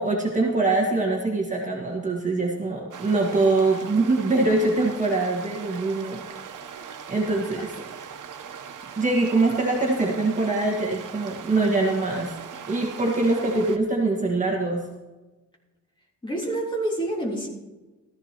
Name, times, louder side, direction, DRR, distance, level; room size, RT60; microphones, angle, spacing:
voice 1, 0.0-6.2 7.1-7.7 9.0-12.3 12.7-14.8, right 2 dB, 25° right, -1 dB, 1.6 m, -23 dB
sound 1, 2.9-13.8, right 7 dB, 85° right, 1.0 m, -40 dB
voice 2, 7.4-7.9 16.2-17.5, right 1 dB, 15° left, -3 dB, 3.3 m, -28 dB
15.5 x 14.0 x 3.0 m, 1.2 s
wide cardioid pair, 165°, 31 cm